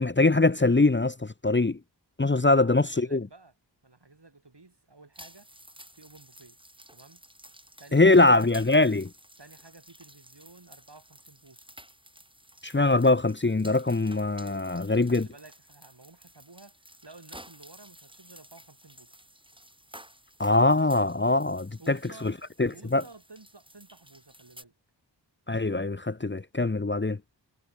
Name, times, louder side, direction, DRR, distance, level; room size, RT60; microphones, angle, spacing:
voice 1, 0.0-1.8 2.2-3.2 7.9-9.1 12.6-15.3 20.4-22.0 22.6-23.0 25.5-27.2, left 2 dB, 25° left, 0.8 m, -22 dB
voice 2, 2.4-3.5 3.8-5.5 6.0-6.6 6.9-7.2 7.8-8.4 9.4-11.7 14.6-16.8 17.0-19.1 21.8-24.7, right 3 dB, 70° right, 7.7 m, -52 dB
sound 1, 5.1-24.6, right 1 dB, 10° right, 3.9 m, -53 dB
wide cardioid pair, 50°, 42 cm